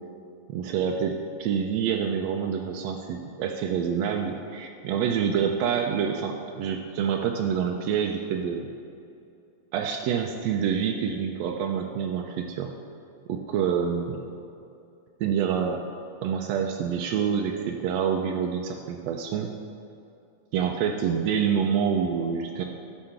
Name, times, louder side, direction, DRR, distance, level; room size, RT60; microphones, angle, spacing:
voice 1, 0.5-8.7 9.7-12.7 13.3-14.2 15.2-15.8 16.2-19.5 20.5-22.6, right 7 dB, 75° right, 2 dB, 1.6 m, -27 dB
15.0 x 5.7 x 5.8 m, 2.6 s
omnidirectional pair, 3.5 m